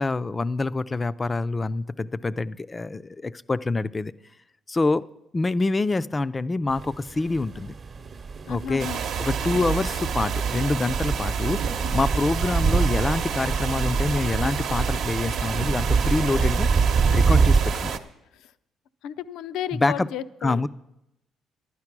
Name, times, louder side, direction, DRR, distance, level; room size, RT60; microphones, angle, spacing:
voice 1, 0.0-4.1 4.7-5.1 5.3-7.7 8.5-8.9 9.2-11.6 11.9-16.7 17.1-17.9 19.7-20.1 20.4-20.7, left 3 dB, 20° left, 15 dB, 0.3 m, -26 dB
sound 1, 6.7-17.7, right 5 dB, 40° right, 0.8 m, -25 dB
voice 2, 8.5-9.0 19.0-20.7, left 9 dB, 85° left, 14 dB, 0.5 m, -33 dB
sound 2, 8.8-18.0, right 7 dB, 70° right, 0.9 m, -29 dB
11.5 x 9.7 x 6.0 m, 0.86 s
cardioid pair, 110°, 0 cm